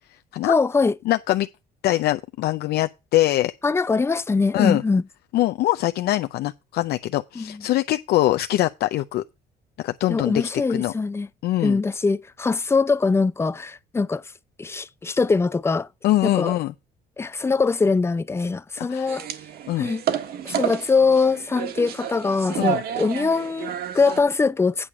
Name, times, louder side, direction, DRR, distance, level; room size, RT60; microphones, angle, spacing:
voice 1, 0.4-0.9 3.6-5.0 7.4-7.6 10.1-11.3 11.6-14.2 14.6-15.9 16.2-16.5 17.2-19.2 19.8-20.0 20.4-24.9, left 4 dB, 15° left, 0.5 m, -22 dB
voice 2, 1.1-1.5 1.8-3.5 4.5-4.8 5.3-9.2 9.8-10.9 11.4-11.8 16.0-16.7 18.8-19.1 19.7-19.9 22.6-22.8, left 15 dB, 70° left, 0.5 m, -23 dB
sound 1, 19.1-24.2, right 9 dB, 65° right, 1.5 m, -30 dB
8.7 x 4.8 x 7.2 m
cardioid pair, 110°, 17 cm